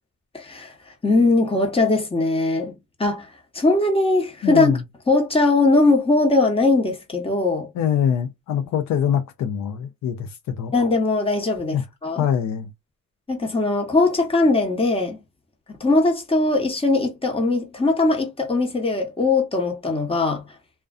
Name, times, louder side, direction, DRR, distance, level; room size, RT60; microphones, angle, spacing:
voice 1, 0.3-0.7 1.0-3.3 3.5-4.7 5.1-7.7 10.7-12.3 13.3-15.2 15.8-20.4, left 2 dB, 20° left, 0.9 m, -20 dB
voice 2, 4.4-4.8 7.8-10.7 11.7-11.8 12.2-12.7, left 9 dB, 65° left, 0.5 m, -24 dB
2.4 x 2.2 x 2.4 m
cardioid pair, 90°, 30 cm